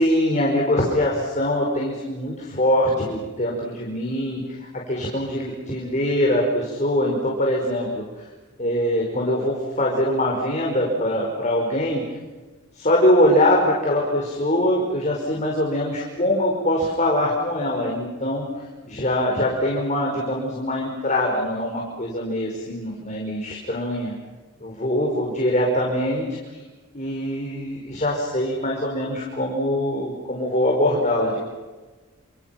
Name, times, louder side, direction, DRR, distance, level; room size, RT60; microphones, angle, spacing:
voice 1, 0.0-8.3 8.6-12.0 12.7-24.1 24.6-26.6 26.9-31.4, left 1 dB, 35° left, -1 dB, 5.2 m, -23 dB
28.5 x 28.0 x 6.0 m, 1.3 s
head